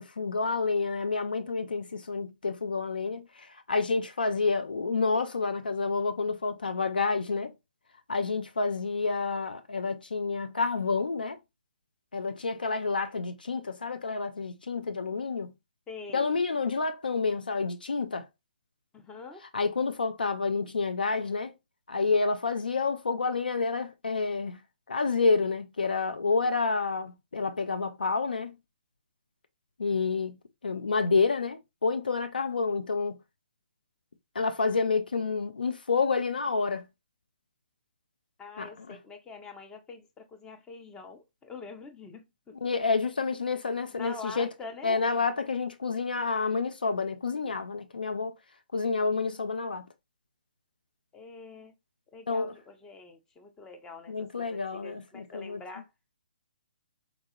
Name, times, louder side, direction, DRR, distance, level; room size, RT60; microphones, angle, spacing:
voice 1, 0.0-7.5 8.1-11.4 12.1-15.5 16.1-18.2 19.5-21.5 21.9-24.6 24.9-28.5 29.8-30.4 30.6-33.2 34.3-36.9 38.6-39.0 42.6-44.5 44.8-48.3 48.7-49.9 52.3-52.5 54.1-55.6, left 4 dB, 75° left, 0.4 m, -29 dB
voice 2, 15.9-16.4 18.9-19.4 38.4-42.6 43.9-45.1 51.1-51.8 52.1-55.9, left 4 dB, 10° left, 0.5 m, -45 dB
4.1 x 2.3 x 2.6 m
figure-of-eight pair, 135°, 5 cm